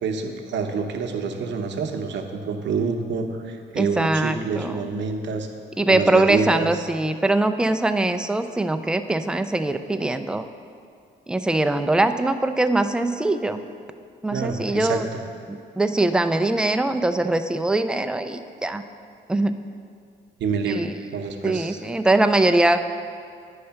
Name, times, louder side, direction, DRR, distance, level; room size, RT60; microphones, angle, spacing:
voice 1, 0.0-5.5 5.9-6.7 14.3-15.0 20.4-20.9 21.1-21.8, right 5 dB, 65° right, 4 dB, 0.7 m, -27 dB
voice 2, 3.8-4.9 5.8-10.5 11.3-13.6 14.2-15.1 15.5-18.8 19.3-19.6 20.7-21.0 21.4-22.8, right 2 dB, 5° right, 8 dB, 0.3 m, -22 dB
9.6 x 3.2 x 5.7 m, 2.3 s
cardioid pair, 90°, 20 cm